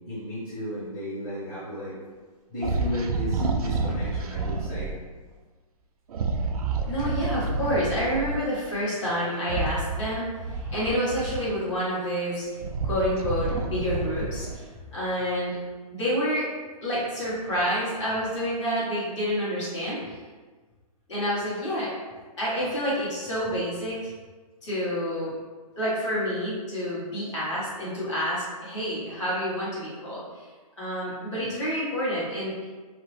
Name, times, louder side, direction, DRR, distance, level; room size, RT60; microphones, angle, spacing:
voice 1, 0.0-2.0 2.5-4.9, left 1 dB, 15° left, -14 dB, 0.9 m, -34 dB
sound 1, 2.6-4.9 6.1-8.4 9.4-11.7 12.3-14.7, right 3 dB, 75° right, 0.4 m, -29 dB
voice 2, 6.9-14.6 14.9-15.6 15.9-16.5 16.8-20.2 21.1-21.9 22.4-24.1 24.6-25.3 25.8-30.5 30.8-32.5, equal, 50° left, -8 dB, 1.5 m, -28 dB
2.8 x 2.0 x 3.2 m, 1.4 s
hypercardioid pair, 160°, 19 cm